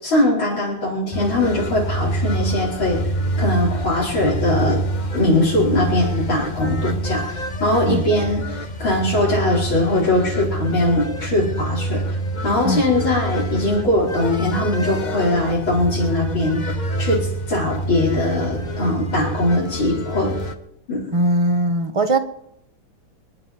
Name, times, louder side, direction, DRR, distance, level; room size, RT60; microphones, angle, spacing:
voice 1, 0.0-3.0 3.4-4.8 5.1-12.0 12.4-16.7 17.0-20.4 20.9-21.1, left 1 dB, 75° left, 5.4 m, -21 dB
sound 1, 1.1-20.5, right 1 dB, 30° left, 0.9 m, -26 dB
voice 2, 21.1-22.2, right 1 dB, 20° right, 1.0 m, -20 dB
27.5 x 11.0 x 4.5 m
omnidirectional pair, 2.2 m